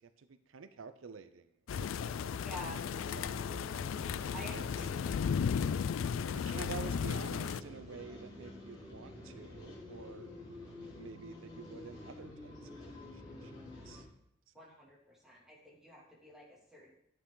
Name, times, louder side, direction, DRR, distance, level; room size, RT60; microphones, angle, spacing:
voice 1, 0.0-1.5 1.8-2.5 3.1-3.5 3.9-4.6 6.3-10.3 11.0-14.1, right 5 dB, 90° right, 11 dB, 0.6 m, -49 dB
sound 1, 1.7-7.6, left 7 dB, 85° left, 0.3 m, -35 dB
voice 2, 2.4-2.9 4.3-5.3 14.5-16.9, equal, ahead, -4 dB, 2.5 m, -49 dB
sound 2, 2.7-14.0, left 2 dB, 25° left, 3.6 m, -49 dB
11.0 x 8.5 x 3.9 m, 0.74 s
head